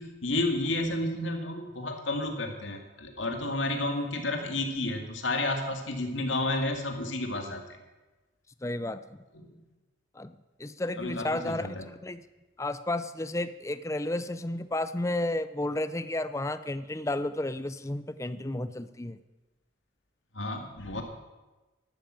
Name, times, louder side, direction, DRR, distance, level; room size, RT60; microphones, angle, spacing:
voice 1, 0.0-7.7 9.3-9.6 11.0-11.9 20.3-21.0, left 2 dB, 85° left, 4 dB, 2.1 m, -31 dB
voice 2, 8.6-9.0 10.2-10.3 10.6-12.2 12.6-19.2, left 1 dB, 15° left, 12 dB, 0.5 m, -32 dB
13.0 x 12.0 x 7.7 m, 1.1 s
head